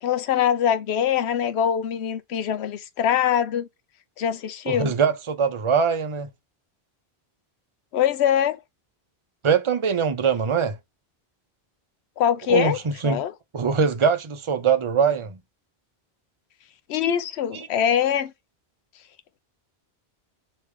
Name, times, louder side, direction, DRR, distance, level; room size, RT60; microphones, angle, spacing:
voice 1, 0.0-3.7 4.2-4.9 7.9-8.6 12.2-12.8 13.0-13.3 16.9-18.3, left 9 dB, 85° left, 0.9 m, -23 dB
voice 2, 4.7-6.3 9.4-10.8 12.5-12.7 13.0-13.2 13.5-15.4 17.5-17.7, right 6 dB, 35° right, 0.6 m, -22 dB
3.4 x 3.1 x 4.7 m
omnidirectional pair, 1.1 m